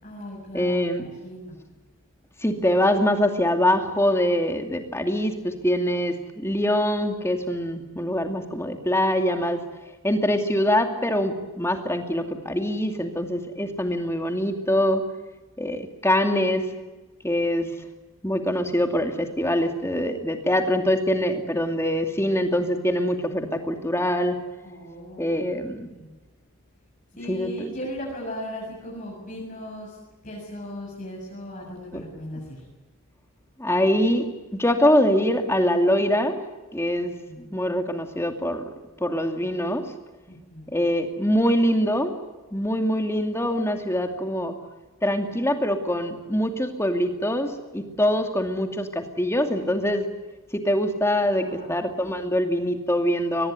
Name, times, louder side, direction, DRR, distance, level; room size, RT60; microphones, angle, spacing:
voice 1, 0.0-1.6 24.6-26.1 27.2-30.0 30.2-32.6 37.0-37.5 40.3-40.7 51.2-51.8, left 1 dB, 35° left, -3 dB, 7.4 m, -38 dB
voice 2, 0.5-1.1 2.4-9.6 10.0-15.0 15.6-16.7 17.2-17.7 18.2-24.4 25.2-25.9 27.3-27.7 31.9-32.0 33.6-34.3 34.5-36.4 36.7-38.7 39.0-39.9 40.7-42.1 42.5-44.5 45.0-50.1 50.5-53.5, equal, 10° left, 5 dB, 2.4 m, -24 dB
24.0 x 20.0 x 9.4 m, 1.2 s
head